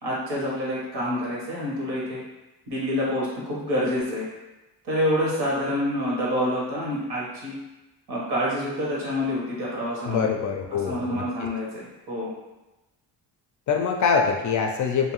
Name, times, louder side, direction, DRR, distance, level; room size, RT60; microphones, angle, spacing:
voice 1, 0.0-2.2 2.7-4.3 4.8-7.5 8.1-10.3 10.7-12.3, equal, 70° right, -6 dB, 1.3 m, -27 dB
voice 2, 10.0-11.2 13.7-15.1, left 6 dB, 50° left, 2 dB, 0.4 m, -24 dB
2.6 x 2.3 x 3.0 m, 1.0 s
cardioid pair, 100°, 40 cm